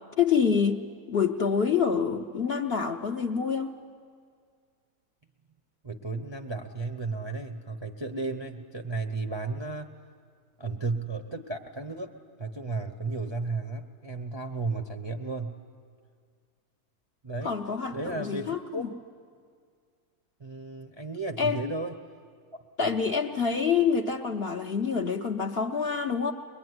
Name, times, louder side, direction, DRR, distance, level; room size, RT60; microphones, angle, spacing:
voice 1, 0.2-3.7 17.4-18.9 21.4-21.7 22.8-26.3, left 6 dB, 50° left, 3 dB, 0.8 m, -27 dB
voice 2, 5.8-10.0 10.6-15.6 17.2-17.5 17.9-18.9 20.4-21.9, right 3 dB, 25° right, 3 dB, 0.6 m, -34 dB
22.5 x 21.5 x 9.5 m, 2.1 s
omnidirectional pair, 1.7 m